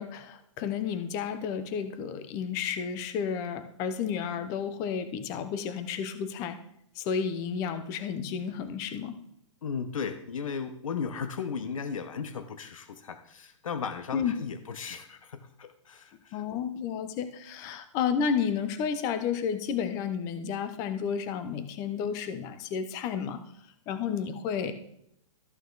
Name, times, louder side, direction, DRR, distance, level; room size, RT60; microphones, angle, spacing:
voice 1, 0.0-6.6 7.0-9.1 14.1-14.3 16.3-23.4 23.9-24.7, left 7 dB, 20° left, 11 dB, 0.6 m, -31 dB
voice 2, 9.6-16.4, left 6 dB, 85° left, 9 dB, 1.0 m, -36 dB
13.5 x 8.3 x 3.9 m, 0.74 s
hypercardioid pair, 165°, 17 cm